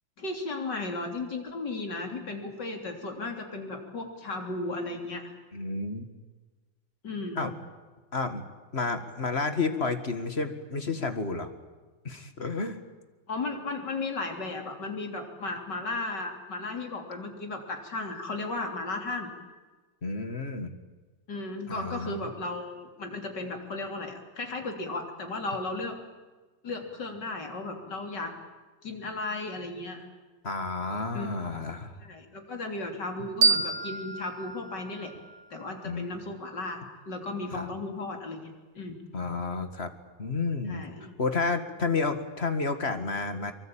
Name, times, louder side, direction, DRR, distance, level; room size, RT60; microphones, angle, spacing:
voice 1, 0.2-5.3 7.0-7.5 13.3-19.3 21.3-26.0 26.6-28.3 28.8-30.1 31.1-31.3 32.0-35.1 35.5-39.0 40.7-41.1, left 2 dB, 70° left, 3 dB, 4.1 m, -35 dB
voice 2, 5.5-6.0 7.4-7.5 8.1-8.4 8.7-11.5 12.0-12.8 20.0-20.8 21.7-22.3 30.4-32.0 35.8-36.2 37.5-37.7 39.1-39.9 40.2-40.8 41.2-43.5, left 3 dB, 35° left, 8 dB, 2.1 m, -31 dB
sound 1, 33.4-36.2, right 4 dB, 75° right, 3.2 m, -29 dB
24.5 x 24.0 x 8.8 m, 1.3 s
omnidirectional pair, 1.9 m